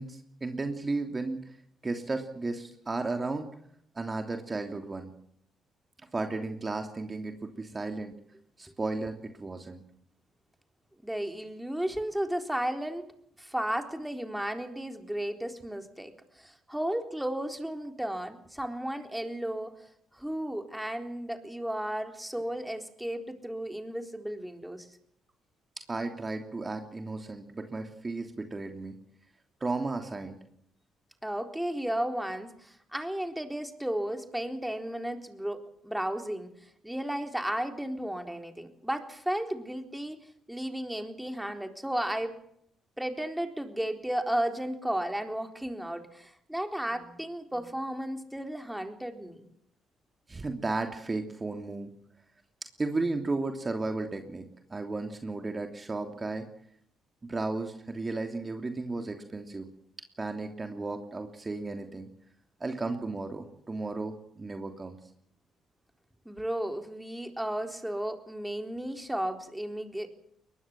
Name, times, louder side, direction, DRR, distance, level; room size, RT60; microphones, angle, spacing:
voice 1, 0.0-1.5 1.8-3.5 3.9-5.1 6.1-8.1 8.6-9.8 25.9-28.9 29.6-30.3 50.3-51.9 52.8-54.4 54.7-56.5 57.2-59.7 60.2-62.1 62.6-65.0, right 3 dB, 30° right, 5 dB, 3.0 m, -34 dB
voice 2, 11.0-13.1 13.4-19.7 20.1-24.9 31.2-36.5 36.8-40.2 40.5-42.4 43.0-49.5 66.3-70.1, right 1 dB, 5° right, 5 dB, 3.9 m, -34 dB
22.5 x 20.0 x 7.5 m, 0.70 s
supercardioid pair, 65°, 0 cm